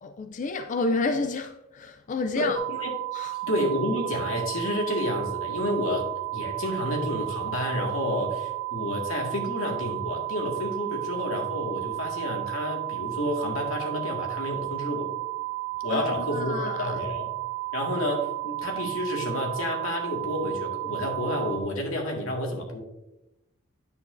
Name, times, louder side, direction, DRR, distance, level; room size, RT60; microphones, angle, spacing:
voice 1, 0.0-2.6 3.1-3.3 15.9-16.1 16.3-16.9, left 3 dB, 40° left, 0.4 m, -29 dB
voice 2, 2.3-2.9 3.5-6.0 6.3-15.1 15.8-17.3 17.7-22.8, left 1 dB, 85° left, 1.9 m, -30 dB
sound 1, 2.5-21.6, right 21 dB, 45° right, 1.0 m, -33 dB
9.5 x 6.8 x 2.6 m
head